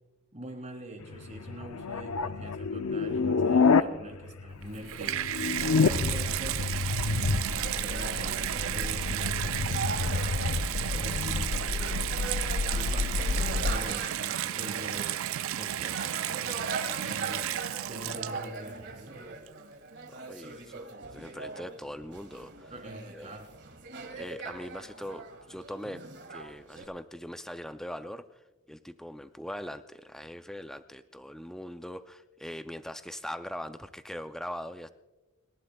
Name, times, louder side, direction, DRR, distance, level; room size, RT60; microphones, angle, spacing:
voice 1, 0.3-5.2 5.4-9.9 10.9-12.2 12.7-15.1 15.5-16.6 17.0-17.4 17.9-19.1 22.7-23.5, right 1 dB, 30° right, 2 dB, 2.8 m, -44 dB
sound 1, 1.0-3.8 4.1-13.8, left 4 dB, 85° left, 0.5 m, -29 dB
Water tap faucet / Bathtub (filling or washing), 4.6-18.7 19.5-19.6, right 12 dB, 70° right, 0.4 m, -33 dB
sound 2, 7.5-26.8, right 3 dB, 50° right, 1.9 m, -41 dB
voice 2, 20.3-22.7 23.1-23.3 24.2-26.0 26.3-34.9, equal, ahead, 9 dB, 0.3 m, -41 dB
29.5 x 12.0 x 2.3 m, 1.1 s
head